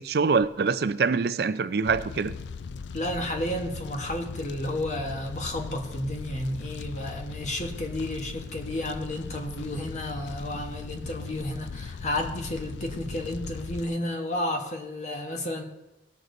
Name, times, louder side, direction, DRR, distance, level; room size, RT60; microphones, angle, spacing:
voice 1, 0.0-2.3, right 5 dB, 60° right, 0.4 m, -24 dB
Fire, 1.9-13.9, left 5 dB, 85° left, 0.4 m, -39 dB
voice 2, 2.9-15.6, left 1 dB, 40° left, 1.4 m, -32 dB
17.5 x 6.6 x 4.0 m
head